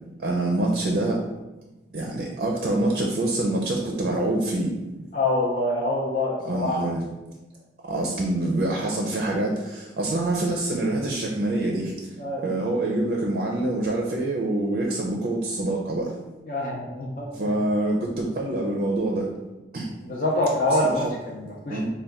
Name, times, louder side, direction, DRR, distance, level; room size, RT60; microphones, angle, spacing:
voice 1, 0.2-1.2 1.9-4.8 6.4-7.0 7.9-11.9 12.4-16.1 17.4-19.3 19.7-19.9 20.7-21.1 21.7-21.9, right 2 dB, 50° right, -1 dB, 0.5 m, -25 dB
voice 2, 5.1-6.8 12.2-12.4 16.5-17.3 20.0-21.9, left 1 dB, 45° left, -4 dB, 0.6 m, -25 dB
4.1 x 2.2 x 3.5 m, 1.1 s
head